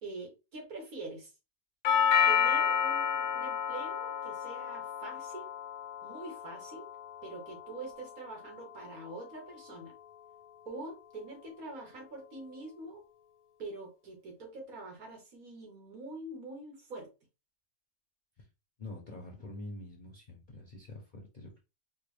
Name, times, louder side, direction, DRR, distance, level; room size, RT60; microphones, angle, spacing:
voice 1, 0.0-1.3 2.3-5.5 6.0-6.9 7.2-9.9 10.6-13.0 13.6-17.1, right 2 dB, 70° right, 1.7 m, -44 dB
Doorbell, 1.8-9.9, left 8 dB, 70° left, 1.0 m, -32 dB
voice 2, 18.8-21.6, left 2 dB, 40° left, 0.7 m, -46 dB
4.4 x 2.1 x 3.3 m
omnidirectional pair, 1.6 m